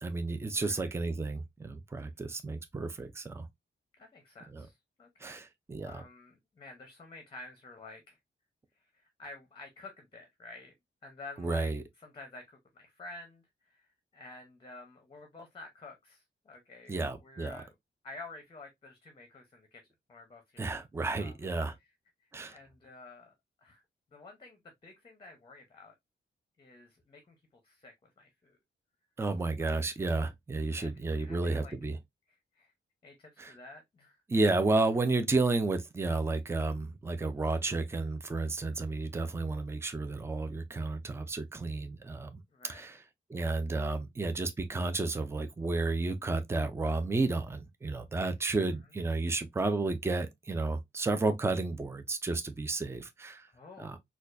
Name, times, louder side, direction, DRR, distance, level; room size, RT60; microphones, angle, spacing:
voice 1, 0.0-3.5 4.5-4.6 5.2-6.0 11.4-11.8 16.9-17.6 20.6-21.7 22.3-22.6 29.2-32.0 33.4-33.5 34.3-42.4 42.7-42.9 43.3-53.5 53.8-54.0, right 3 dB, 10° right, 0.4 m, -32 dB
voice 2, 0.5-0.9 4.0-5.4 5.8-8.2 8.8-10.7 11.0-11.7 12.0-13.9 14.1-17.7 18.0-19.8 20.1-20.7 21.2-21.4 22.5-23.3 23.6-23.8 24.1-25.9 26.6-27.4 27.6-28.6 29.6-29.8 30.7-31.7 32.3-32.7 33.0-34.2 38.4-38.8 42.5-43.0 48.2-48.8 53.5-54.0, left 2 dB, 25° left, 0.7 m, -50 dB
4.1 x 2.4 x 2.5 m
wide cardioid pair, 155°, 20 cm